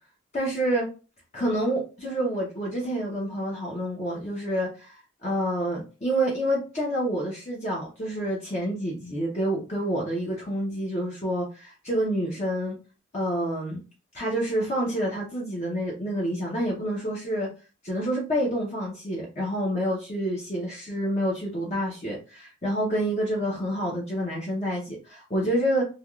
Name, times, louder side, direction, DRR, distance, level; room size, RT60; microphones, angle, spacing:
voice 1, 0.3-0.9 1.3-12.8 13.1-13.8 14.1-17.5 17.8-25.8, right 1 dB, 35° left, -4 dB, 0.8 m, -28 dB
3.4 x 2.3 x 2.3 m, 0.34 s
head